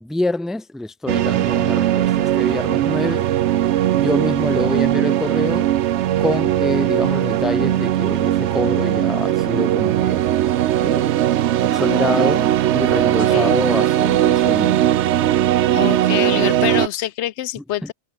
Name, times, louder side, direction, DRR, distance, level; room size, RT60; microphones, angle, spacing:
voice 1, 0.0-3.3 4.0-5.7 6.2-10.2 10.8-11.2 11.7-14.8 17.8-17.9, left 2 dB, ahead, 0.7 m, -26 dB
sound 1, 1.1-15.8, left 1 dB, 60° left, 6.7 m, -43 dB
sound 2, 1.1-16.9, right 12 dB, 85° right, 0.9 m, -19 dB
voice 2, 13.3-13.7 15.7-17.9, left 13 dB, 80° left, 0.9 m, -25 dB
omnidirectional pair, 1.2 m